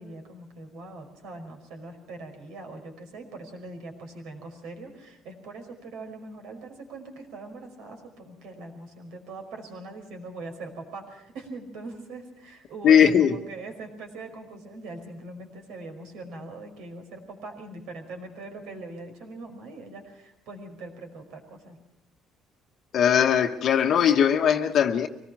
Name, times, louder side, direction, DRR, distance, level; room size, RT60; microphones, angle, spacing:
voice 1, 0.0-21.8, right 2 dB, 80° right, 5.3 m, -41 dB
voice 2, 12.8-13.3 22.9-25.1, left 8 dB, 45° left, 1.0 m, -19 dB
24.5 x 19.5 x 5.9 m
cardioid pair, 160°, 0 cm